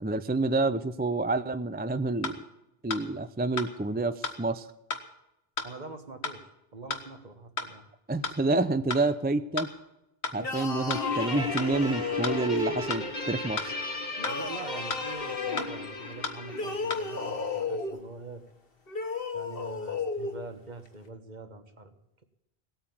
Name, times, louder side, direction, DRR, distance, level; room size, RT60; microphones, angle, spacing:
voice 1, 0.0-2.4 2.8-4.7 8.1-9.7 10.3-13.7, right 2 dB, 15° right, 12 dB, 0.4 m, -28 dB
sound 1, 2.2-2.4 2.9-3.0 3.6-3.7 4.2-4.4 4.9-5.0 5.6-5.7 6.2-6.4 6.9-7.0 7.6-7.7 8.2-8.4 8.9-9.0 9.6-9.7 10.2-10.4 10.9-11.0 11.6-11.7 12.2-12.4 12.9-13.0 13.6-13.7 14.2-14.4 14.9-15.0 15.6-15.7 16.2-16.4 16.9-17.0, left 4 dB, 80° left, 1.7 m, -33 dB
voice 2, 5.6-7.9 14.3-18.4 19.3-21.9, right 3 dB, 45° right, 8 dB, 1.5 m, -44 dB
sound 2, 10.4-13.1 14.2-15.7 16.5-18.0 18.9-20.3, left 4 dB, 60° left, 1.6 m, -34 dB
Guitar, 10.9-17.6, left 3 dB, 45° left, 1.9 m, -36 dB
18.0 x 8.9 x 7.2 m, 0.89 s
omnidirectional pair, 1.1 m